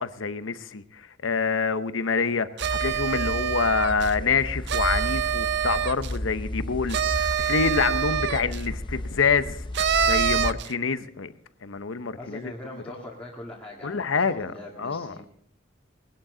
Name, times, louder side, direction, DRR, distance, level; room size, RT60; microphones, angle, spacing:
voice 1, 0.0-9.7 10.0-11.3 11.6-12.5 13.8-15.1, left 5 dB, 80° left, 12 dB, 0.8 m, -26 dB
sound 1, 2.6-10.5, left 1 dB, 25° left, 0.6 m, -33 dB
sound 2, 2.6-4.1 4.7-6.2 6.9-8.6 9.7-10.7, right 9 dB, 60° right, 0.5 m, -26 dB
voice 2, 12.1-15.3, left 1 dB, 5° left, -4 dB, 2.0 m, -41 dB
19.0 x 11.5 x 3.9 m, 0.67 s
head